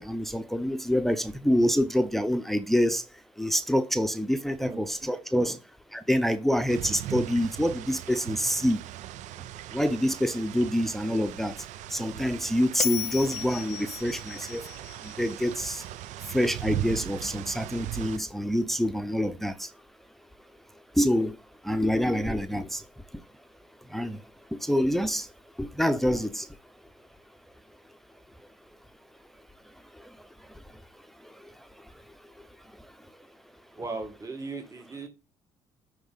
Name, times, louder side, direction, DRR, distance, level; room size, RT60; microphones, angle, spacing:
voice 1, 0.0-3.0 3.4-5.6 5.9-8.8 9.7-11.5 11.9-14.6 15.0-15.8 16.3-19.7 21.0-21.4 21.6-22.8 23.9-24.2 24.5-25.3 25.6-26.5, equal, ahead, 0.7 m, -26 dB
sound 1, 6.7-18.2, right 15 dB, 70° right, 0.4 m, -39 dB
Bell, 12.8-16.0, left 14 dB, 60° left, 0.4 m, -36 dB
voice 2, 33.7-35.1, right 3 dB, 25° right, 1.9 m, -37 dB
9.1 x 3.6 x 4.0 m
supercardioid pair, 70°, 13 cm